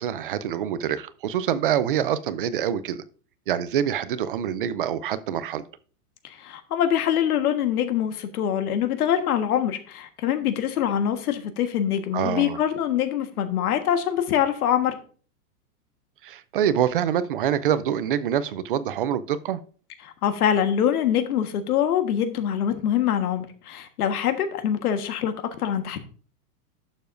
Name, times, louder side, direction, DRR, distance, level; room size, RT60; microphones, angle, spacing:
voice 1, 0.0-3.0 3.5-5.6 12.1-12.6 16.2-19.6, right 9 dB, 40° right, 0.4 m, -25 dB
voice 2, 6.2-15.0 20.0-26.0, left 9 dB, 70° left, 1.5 m, -24 dB
11.5 x 7.0 x 2.6 m
supercardioid pair, 165°, 46 cm